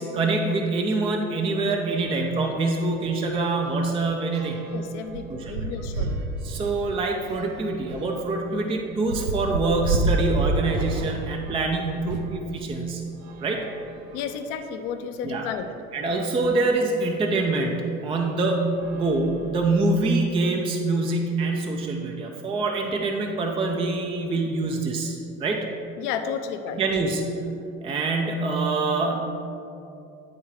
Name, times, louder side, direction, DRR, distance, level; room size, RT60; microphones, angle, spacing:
voice 1, 0.0-4.6 5.3-6.0 6.4-13.0 13.4-13.7 15.2-15.5 15.9-25.6 26.7-27.5 27.8-29.2, right 3 dB, 15° right, 2 dB, 0.4 m, -25 dB
sound 1, 2.0-2.1 2.5-2.7 3.0-12.4 13.2-14.5 15.2-15.3 15.5-15.6 17.3-17.4 18.1-18.4 18.7-20.0, right 3 dB, 75° right, 0.6 m, -31 dB
voice 2, 4.7-6.2 14.1-15.7 26.0-26.8, left 7 dB, 50° left, 8 dB, 0.7 m, -32 dB
9.5 x 3.6 x 4.4 m, 2.8 s
hypercardioid pair, 75°, 42 cm